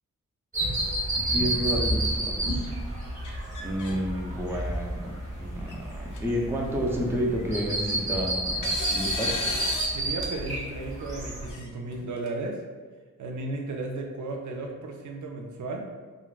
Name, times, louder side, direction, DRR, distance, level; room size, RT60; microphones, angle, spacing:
sound 1, 0.5-11.5, right 1 dB, 25° right, 0.8 m, -30 dB
voice 1, 1.2-2.7 3.6-9.3, equal, 10° right, -1 dB, 0.3 m, -30 dB
sound 2, 3.2-4.0 4.4-4.9 5.7-5.8 6.1-6.2 7.5-8.1 8.6-9.9 10.2-10.3 11.4-12.3, left 4 dB, 90° left, 0.5 m, -36 dB
voice 2, 9.9-12.6 13.2-15.9, right 2 dB, 80° right, 1 dB, 0.5 m, -34 dB
3.7 x 2.1 x 2.3 m, 1.4 s
wide cardioid pair, 140°, 30 cm